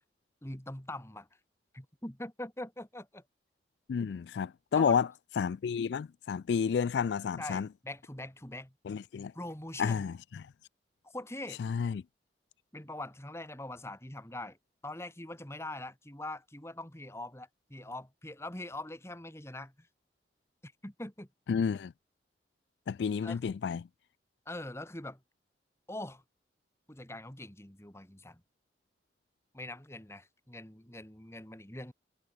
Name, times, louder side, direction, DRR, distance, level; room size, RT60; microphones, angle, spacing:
voice 1, 0.4-1.3 1.7-3.2 4.7-5.0 7.4-8.7 9.3-10.1 11.0-11.6 12.7-14.6 14.8-19.9 20.6-21.3 23.2-23.6 24.5-25.2 25.9-26.2 26.9-28.4 29.5-31.9, left 1 dB, 15° left, 2.4 m, -43 dB
voice 2, 3.9-5.1 5.4-7.7 8.9-9.3 9.8-10.2 11.6-12.0 21.5-21.9 22.9-23.8, left 6 dB, 75° left, 0.3 m, -30 dB
head